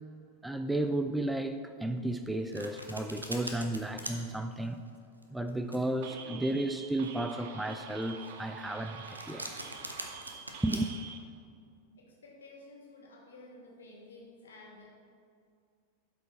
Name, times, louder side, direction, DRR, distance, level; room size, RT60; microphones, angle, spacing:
voice 1, 0.4-4.8 5.3-9.5 10.6-10.9, right 1 dB, 5° right, 8 dB, 0.3 m, -33 dB
Domestic sounds home sounds, 2.1-10.8, right 1 dB, 85° right, 0.8 m, -43 dB
sound 1, 6.0-11.2, right 6 dB, 55° right, 0.7 m, -47 dB
voice 2, 12.0-14.9, left 2 dB, 70° left, -3 dB, 2.2 m, -52 dB
12.0 x 5.1 x 4.4 m, 2.3 s
figure-of-eight pair, 90°, 0 cm